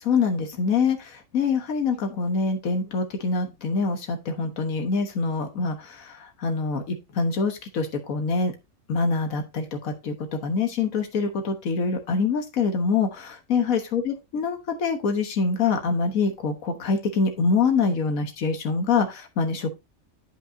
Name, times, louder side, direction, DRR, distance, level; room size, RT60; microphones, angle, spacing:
voice 1, 0.0-8.5 8.9-10.1 10.4-19.7, left 4 dB, 85° left, 5 dB, 1.6 m, -25 dB
11.0 x 5.4 x 2.7 m, 0.23 s
omnidirectional pair, 1.4 m